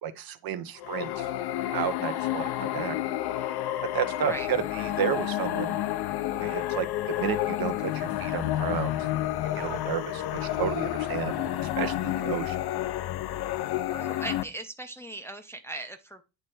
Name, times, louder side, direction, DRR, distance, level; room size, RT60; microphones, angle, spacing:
voice 1, 0.0-1.3 1.7-3.0 3.9-5.8 6.4-9.1 9.5-12.6, right 9 dB, 50° right, 0.8 m, -32 dB
sound 1, 0.8-14.4, left 13 dB, 55° left, 0.6 m, -30 dB
voice 2, 13.9-16.2, right 2 dB, 5° left, 0.5 m, -38 dB
9.1 x 3.3 x 4.2 m
cardioid pair, 130°, 46 cm